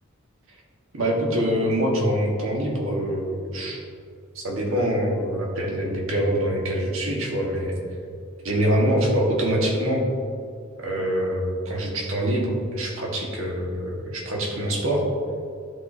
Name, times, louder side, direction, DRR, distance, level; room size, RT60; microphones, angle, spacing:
voice 1, 0.9-3.8 4.3-7.7 8.4-10.0 10.8-15.0, equal, 75° right, -2 dB, 1.4 m, -24 dB
11.5 x 4.2 x 2.7 m, 2.3 s
head